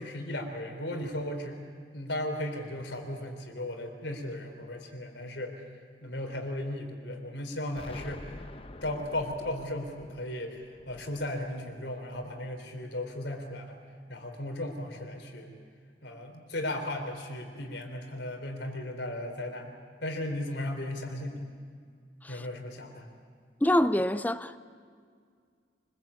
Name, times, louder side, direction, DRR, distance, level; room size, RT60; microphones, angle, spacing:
voice 1, 0.0-1.6 1.9-5.6 6.0-8.4 8.8-10.6 10.9-13.8 14.1-15.6 16.0-19.7 20.0-21.5 22.3-23.1, left 1 dB, 75° left, 4.0 m, -36 dB
Explosion, 7.8-12.6, left 1 dB, 30° left, 0.9 m, -48 dB
voice 2, 23.6-24.6, left 1 dB, 10° left, 0.6 m, -26 dB
25.0 x 21.5 x 8.6 m
head